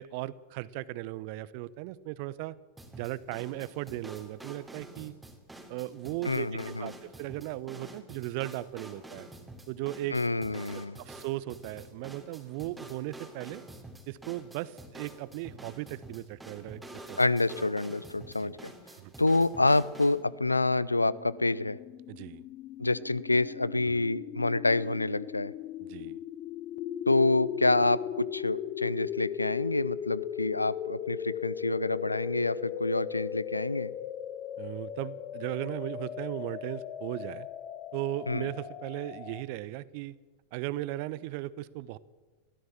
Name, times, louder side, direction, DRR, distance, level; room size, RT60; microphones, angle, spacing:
voice 1, 0.0-2.6 2.9-5.1 5.7-6.5 6.8-9.3 9.7-10.2 11.0-13.6 14.1-17.2 17.6-17.7 18.4-18.6 19.0-19.1 22.1-22.4 25.8-26.2 34.6-37.5 37.9-40.2 40.5-42.0, right 16 dB, 45° right, 20 dB, 0.9 m, -37 dB
sound 1, 2.8-20.2, right 1 dB, 5° right, 3.0 m, -48 dB
voice 2, 6.2-6.9 10.1-11.0 17.2-18.7 19.2-21.8 22.8-25.5 27.1-33.9 38.3-38.5, left 2 dB, 80° left, 20 dB, 0.6 m, -27 dB
sound 2, 20.3-39.4, left 10 dB, 35° left, 1.1 m, -38 dB
22.0 x 16.0 x 7.3 m, 1.3 s
figure-of-eight pair, 90°, 0 cm